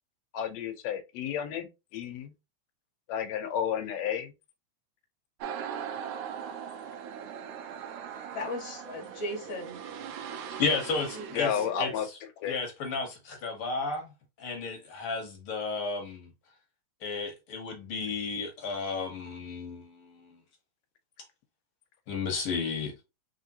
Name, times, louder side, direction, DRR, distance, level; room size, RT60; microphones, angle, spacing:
voice 1, 0.3-2.3 3.1-4.3 11.3-12.1 12.4-12.6, left 8 dB, 70° left, 1.8 m, -32 dB
sound 1, 5.4-11.8, right 8 dB, 80° right, 2.0 m, -40 dB
voice 2, 8.3-9.8 11.1-12.0, left 1 dB, 35° left, 1.5 m, -38 dB
voice 3, 10.6-11.5 11.8-11.9 12.5-14.1 14.4-16.3 17.0-20.4 22.1-22.9, left 4 dB, 55° left, 1.7 m, -33 dB
4.6 x 3.6 x 2.7 m
omnidirectional pair, 3.4 m